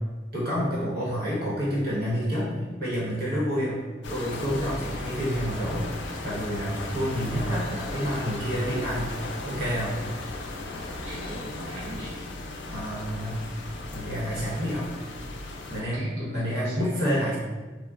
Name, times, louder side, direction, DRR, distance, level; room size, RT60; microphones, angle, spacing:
voice 1, 0.3-3.8 4.1-9.1 9.4-10.0 12.7-13.4 13.9-14.9 15.7-17.4, equal, 55° right, -7 dB, 1.0 m, -28 dB
sound 1, 4.0-15.8, left 2 dB, 70° left, 0.4 m, -36 dB
voice 2, 11.0-12.2 15.8-17.0, right 1 dB, 75° right, -9 dB, 0.6 m, -40 dB
3.5 x 2.1 x 2.4 m, 1.3 s
head